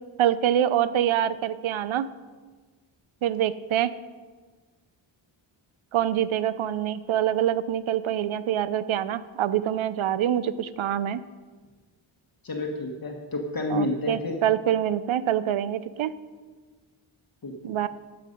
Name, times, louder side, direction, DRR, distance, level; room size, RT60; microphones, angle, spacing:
voice 1, 0.2-2.1 3.2-3.9 5.9-11.2 13.7-16.1 17.6-17.9, right 11 dB, 75° right, 15 dB, 0.7 m, -25 dB
voice 2, 12.4-14.3 17.4-17.5, left 2 dB, 45° left, 1 dB, 1.5 m, -29 dB
13.5 x 8.0 x 5.3 m, 1.4 s
cardioid pair, 90°, 49 cm